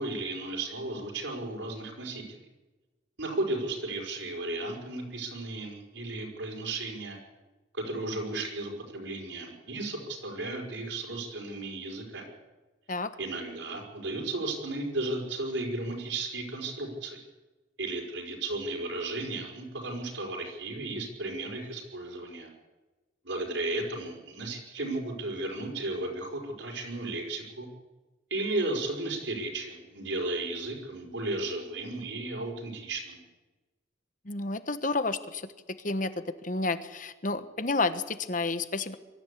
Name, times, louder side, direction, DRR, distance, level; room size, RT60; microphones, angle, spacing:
voice 1, 0.0-2.4 3.2-7.2 7.7-12.3 13.2-17.2 17.8-22.5 23.2-27.7 28.3-33.2, right 2 dB, 75° right, 1 dB, 5.2 m, -34 dB
voice 2, 34.2-35.5 35.8-36.1 36.4-38.9, left 3 dB, 40° left, 11 dB, 1.2 m, -30 dB
23.0 x 14.0 x 8.5 m, 1.2 s
head